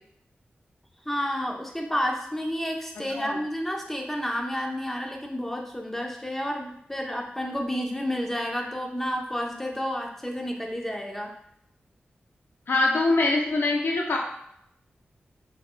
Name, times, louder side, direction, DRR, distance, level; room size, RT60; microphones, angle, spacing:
voice 1, 1.1-11.3, equal, 10° left, 1 dB, 0.7 m, -30 dB
voice 2, 3.0-3.4 12.7-14.2, left 2 dB, 75° left, 0 dB, 0.7 m, -24 dB
5.2 x 4.1 x 2.2 m, 0.73 s
wide cardioid pair, 105°, 4 cm